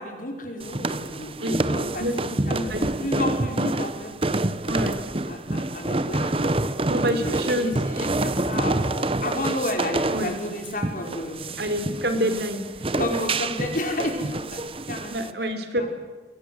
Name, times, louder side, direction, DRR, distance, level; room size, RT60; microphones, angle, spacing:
voice 1, 0.0-4.5 5.3-6.6 7.1-11.6 13.0-14.6 14.9-15.3 15.8-15.9, left 1 dB, 45° left, 3 dB, 5.3 m, -32 dB
sound 1, 0.6-15.3, right 2 dB, 30° right, 0.9 m, -27 dB
voice 2, 2.5-2.8 4.7-5.0 6.9-7.8 10.1-10.3 11.6-13.0 15.1-15.9, equal, 60° right, 8 dB, 3.6 m, -27 dB
29.0 x 22.0 x 7.9 m, 1.3 s
head